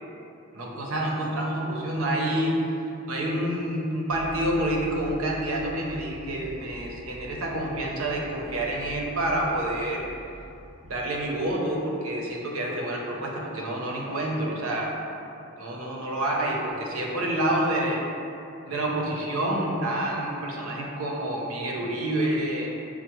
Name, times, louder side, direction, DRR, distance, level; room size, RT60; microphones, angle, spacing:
voice 1, 0.5-2.6 3.1-10.1 10.8-15.0 15.6-18.0 18.6-22.7, right 1 dB, 70° right, -1 dB, 0.6 m, -28 dB
sound 1, 4.1-11.5, equal, 75° left, 0.7 m, -45 dB
5.7 x 2.0 x 2.9 m, 2.7 s
head